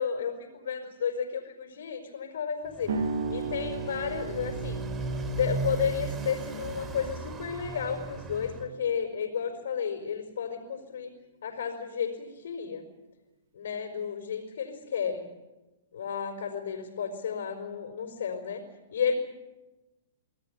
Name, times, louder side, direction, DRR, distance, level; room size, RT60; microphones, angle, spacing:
voice 1, 0.0-2.9 3.3-4.8 5.3-11.1 11.4-12.8 13.5-15.3 15.9-18.6 18.9-19.2, left 7 dB, 80° left, 4 dB, 5.0 m, -32 dB
Motorcycle, 2.7-8.7, right 3 dB, 20° right, 3.2 m, -36 dB
sound 1, 2.9-10.0, right 4 dB, 75° right, 6.1 m, -38 dB
26.5 x 18.0 x 9.4 m, 1.1 s
hypercardioid pair, 140°, 0 cm